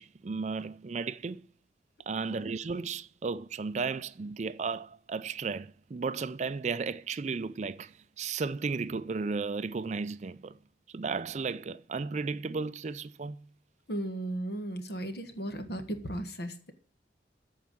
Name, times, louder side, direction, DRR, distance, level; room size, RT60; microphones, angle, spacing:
voice 1, 0.0-1.4 2.1-10.6 10.9-13.5, right 4 dB, 40° right, 0.4 m, -34 dB
voice 2, 13.9-16.7, right 1 dB, 60° left, 1.5 m, -36 dB
14.0 x 4.6 x 7.4 m
head